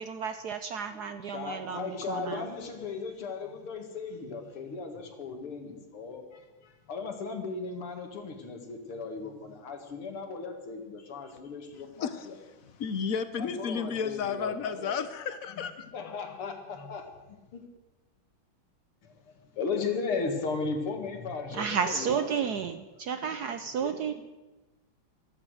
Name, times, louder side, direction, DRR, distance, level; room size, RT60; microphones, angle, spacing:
voice 1, 0.0-2.4 21.5-24.1, right 7 dB, 65° right, 10 dB, 1.0 m, -32 dB
voice 2, 0.9-12.3 13.4-14.9 15.8-17.1 17.5-17.6 19.0-22.5 23.7-24.1, left 4 dB, 85° left, 4 dB, 2.8 m, -36 dB
voice 3, 12.8-15.9, left 6 dB, 50° left, 12 dB, 1.1 m, -32 dB
15.0 x 13.0 x 6.4 m, 1.1 s
omnidirectional pair, 2.3 m